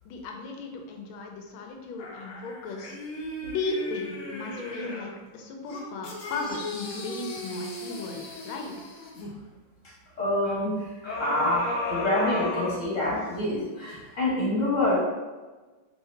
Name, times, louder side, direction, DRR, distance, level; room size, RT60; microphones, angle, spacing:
voice 1, 0.0-3.0 3.4-8.9, left 3 dB, 85° left, 2 dB, 1.5 m, -36 dB
sound 1, 2.0-5.1 5.7-9.3 11.1-13.4 13.9-14.0, left 2 dB, 65° left, 0.8 m, -35 dB
voice 2, 10.2-10.7 11.0-15.0, left 1 dB, 45° left, -6 dB, 1.1 m, -27 dB
4.6 x 2.8 x 3.2 m, 1.3 s
omnidirectional pair, 2.2 m